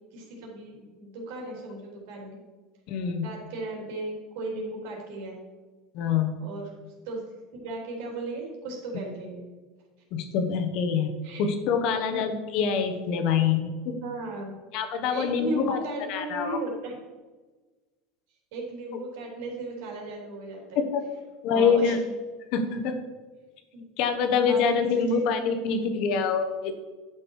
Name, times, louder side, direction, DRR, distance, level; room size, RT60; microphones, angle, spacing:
voice 1, 0.1-2.4 3.2-5.4 6.4-6.7 7.0-7.2 7.5-9.4 11.2-11.4 11.9-12.2 14.0-14.6 15.1-17.0 18.5-20.8 21.5-21.9 23.7-23.8 24.4-25.2, right 2 dB, 65° right, -1 dB, 3.3 m, -36 dB
voice 2, 2.9-3.3 5.9-6.3 10.1-14.0 14.7-15.8 16.1-16.6 20.7-21.0 21.4-22.0 22.5-23.0 24.0-26.7, left 6 dB, 45° left, 7 dB, 1.2 m, -25 dB
11.5 x 6.2 x 4.8 m, 1.3 s
supercardioid pair, 170°, 0 cm